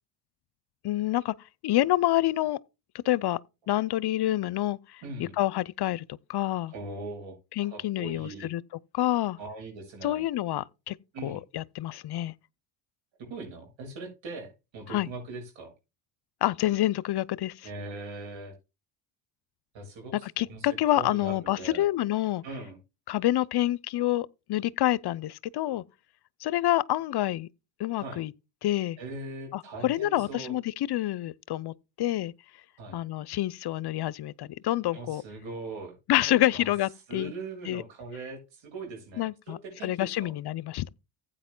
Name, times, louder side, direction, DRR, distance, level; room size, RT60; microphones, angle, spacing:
voice 1, 0.8-1.3 1.6-2.6 3.0-3.4 3.7-6.0 6.3-6.7 7.6-8.6 8.9-9.4 10.0-11.0 11.2-12.3 14.9-15.1 16.4-17.7 20.4-22.4 23.1-25.8 26.4-27.5 27.8-28.3 28.6-29.0 29.5-30.6 30.9-32.3 32.9-35.2 36.1-37.3 37.7-37.8 39.2-40.8, left 14 dB, 55° left, 0.7 m, -27 dB
voice 2, 5.0-5.4 6.7-7.4 7.6-8.5 9.4-10.2 11.1-11.4 13.2-15.7 17.6-18.6 19.7-21.9 22.4-22.8 28.0-28.2 29.0-30.6 32.8-33.0 34.9-36.0 36.3-36.7 37.1-40.3, right 3 dB, 65° right, 7.4 m, -41 dB
15.0 x 8.9 x 2.2 m
supercardioid pair, 70°, 48 cm